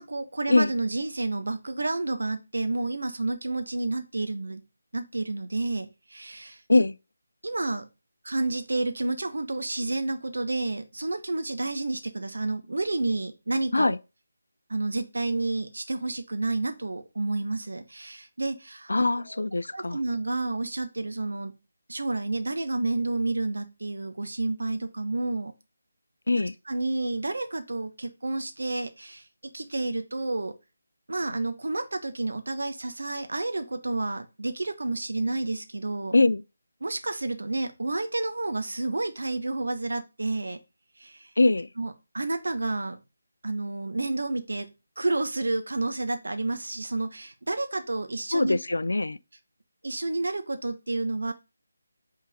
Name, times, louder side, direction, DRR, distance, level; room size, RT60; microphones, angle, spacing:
voice 1, 0.0-4.6 4.9-6.6 7.4-7.8 8.2-13.9 14.7-19.4 19.7-21.5 21.9-25.5 26.7-29.2 29.5-30.5 31.1-36.1 36.8-40.6 41.0-41.3 41.8-43.0 43.4-44.7 45.0-48.6 49.8-51.3, right 2 dB, 65° right, 1.1 m, -30 dB
voice 2, 18.9-20.0 26.3-26.5 36.1-36.4 41.4-41.7 48.3-49.2, left 2 dB, 70° left, 0.4 m, -22 dB
5.5 x 3.8 x 4.9 m
figure-of-eight pair, 155°, 0 cm